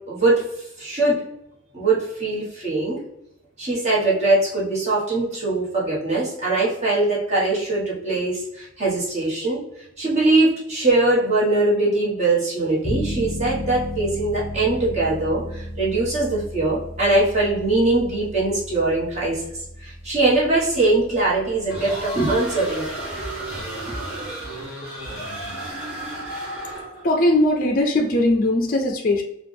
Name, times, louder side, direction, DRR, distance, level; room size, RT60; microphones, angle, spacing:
voice 1, 0.1-0.4 0.8-1.2 1.7-3.0 3.6-9.6 10.0-19.4 19.8-23.0, right 2 dB, 30° right, -6 dB, 1.5 m, -21 dB
sound 1, 12.8-23.6, equal, 10° left, 1.3 m, -35 dB
sound 2, 21.7-27.1, right 1 dB, 5° right, 1.5 m, -32 dB
voice 2, 27.0-29.2, left 1 dB, 40° left, 3 dB, 0.5 m, -19 dB
4.7 x 2.4 x 3.4 m, 0.84 s
head